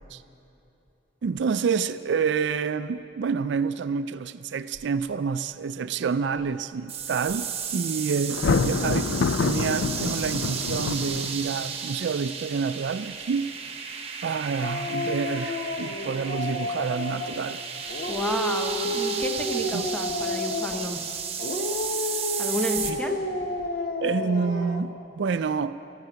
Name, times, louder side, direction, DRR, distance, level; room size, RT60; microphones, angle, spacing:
voice 1, 1.2-7.5 7.7-13.5 14.2-17.6 19.7-19.9 22.8-23.0 24.0-25.8, right 5 dB, 65° right, 13 dB, 0.4 m, -28 dB
sound 1, 6.9-22.9, right 7 dB, 30° right, 1.0 m, -34 dB
Thunder, 8.3-11.6, left 4 dB, 80° left, 0.4 m, -26 dB
Dog, 14.6-17.4 17.9-21.0 21.4-24.9, left 1 dB, 50° left, 1.0 m, -31 dB
voice 2, 18.1-21.2 22.4-23.5, left 1 dB, 5° left, 4 dB, 0.8 m, -32 dB
13.0 x 12.0 x 8.0 m, 2.8 s
head